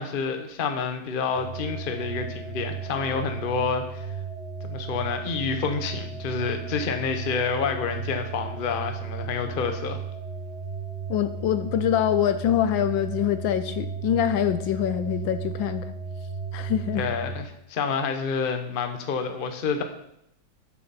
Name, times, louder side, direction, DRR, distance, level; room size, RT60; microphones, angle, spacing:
voice 1, 0.0-4.1 4.6-10.0 16.9-19.8, left 5 dB, 35° left, 6 dB, 0.9 m, -28 dB
sound 1, 1.3-17.4, right 5 dB, 70° right, 0.6 m, -35 dB
voice 2, 11.1-15.9 16.5-17.1, left 10 dB, 75° left, 10 dB, 1.3 m, -24 dB
12.0 x 7.8 x 4.2 m, 0.77 s
omnidirectional pair, 2.2 m